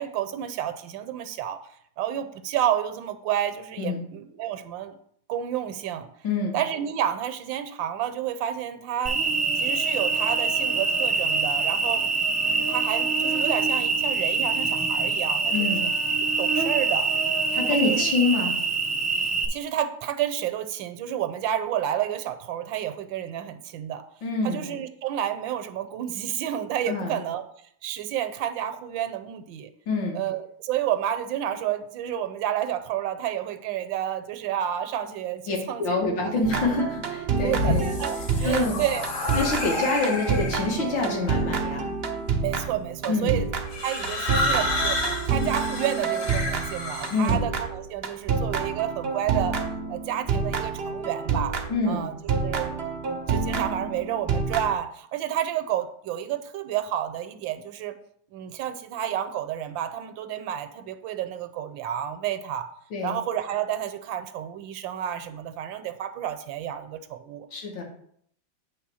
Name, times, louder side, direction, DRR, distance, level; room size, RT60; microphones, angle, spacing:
voice 1, 0.0-1.6 2.0-4.9 5.3-6.1 6.5-9.2 9.6-12.0 12.4-15.5 15.8-15.9 16.4-17.1 17.7-18.0 19.1-24.0 24.4-27.4 27.8-29.7 30.1-36.3 36.6-36.7 37.4-39.1 39.6-39.9 42.4-43.5 43.8-45.0 45.3-49.6 49.9-51.6 51.9-52.2 52.4-52.8 53.0-57.9 58.3-62.7 63.0-67.5, right 10 dB, 80° right, 9 dB, 1.3 m, -30 dB
voice 2, 6.2-6.6 15.5-15.9 17.5-18.5 24.2-24.7 26.9-27.2 29.9-30.2 35.5-37.9 38.4-38.8 39.3-41.9 43.1-43.4 47.1-47.4 51.7-52.2 62.9-63.2 67.5-67.8, left 3 dB, 70° left, 0 dB, 2.3 m, -26 dB
Cricket, 9.1-19.5, right 4 dB, 15° right, 0.5 m, -25 dB
sound 1, 36.4-51.9 52.3-54.7, right 5 dB, 65° right, 0.6 m, -28 dB
sound 2, 37.3-40.8 41.7-42.1 43.7-47.3, left 1 dB, 45° left, 1.5 m, -29 dB
8.4 x 3.3 x 6.2 m, 0.65 s
omnidirectional pair, 2.1 m